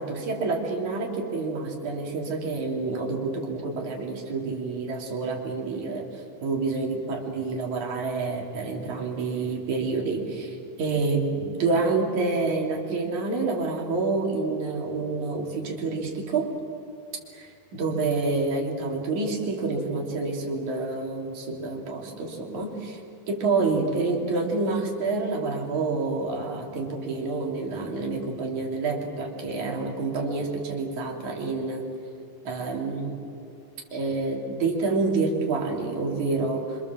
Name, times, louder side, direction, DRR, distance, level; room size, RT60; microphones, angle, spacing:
voice 1, 0.0-16.5 17.7-23.0 23.3-31.9 32.4-33.2 33.9-36.8, right 3 dB, 70° right, 0 dB, 4.5 m, -28 dB
28.0 x 26.0 x 7.3 m, 2.7 s
omnidirectional pair, 3.5 m